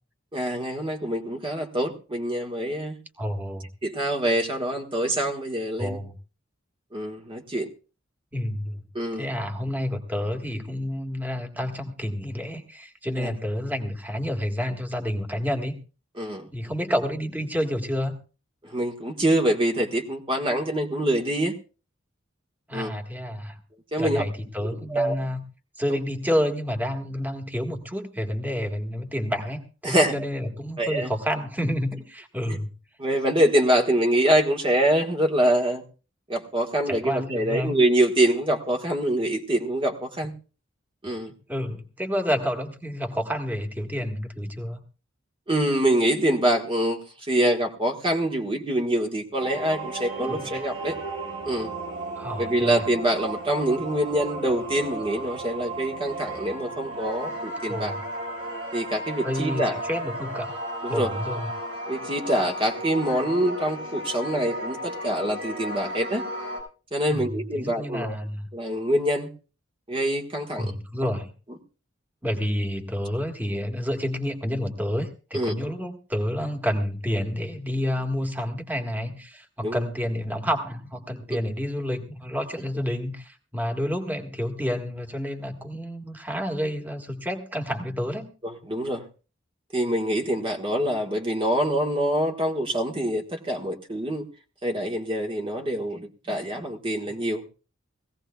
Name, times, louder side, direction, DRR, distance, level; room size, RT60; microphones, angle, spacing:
voice 1, 0.3-3.0 3.8-6.0 6.9-7.7 8.9-9.3 13.2-13.3 16.2-16.5 18.6-21.6 22.7-22.9 23.9-24.2 24.6-25.1 25.9-26.0 29.8-30.1 30.8-31.1 32.4-32.6 33.0-35.8 36.3-40.3 41.0-41.3 45.5-51.0 51.4-51.7 52.4-57.9 58.7-59.8 60.8-61.1 61.9-66.2 66.9-68.1 68.5-69.3 69.9-70.7 75.3-75.5 79.6-79.8 88.4-89.0 89.7-94.2 94.6-97.5, right 1 dB, 25° right, 2 dB, 1.5 m, -25 dB
voice 2, 3.2-3.7 5.8-6.1 8.3-8.8 9.1-15.8 16.5-18.2 22.7-23.6 24.0-25.4 25.8-32.7 36.9-37.8 41.5-44.8 50.2-50.6 52.2-52.8 57.7-58.0 59.2-60.6 60.9-61.5 67.1-67.3 67.6-68.5 70.6-71.3 72.2-88.3 97.0-97.1, equal, 10° right, 4 dB, 1.7 m, -29 dB
sound 1, 49.4-66.6, right 1 dB, 70° right, 6.2 m, -34 dB
21.5 x 16.5 x 2.3 m, 0.35 s
head